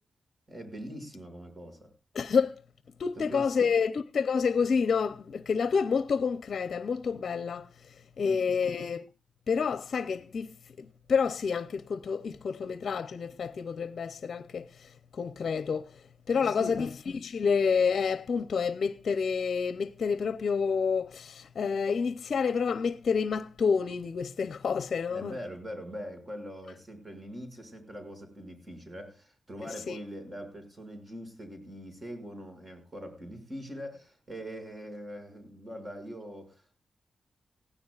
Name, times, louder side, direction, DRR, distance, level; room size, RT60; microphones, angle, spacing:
voice 1, 0.5-1.9 3.2-3.7 8.2-8.4 16.3-16.8 25.1-36.8, equal, 35° right, 6.0 m, -42 dB
voice 2, 2.1-2.6 3.0-9.1 9.5-25.3 29.9-30.0, left 5 dB, 70° left, 0.6 m, -29 dB
19.0 x 16.0 x 2.4 m
cardioid pair, 65°, 0 cm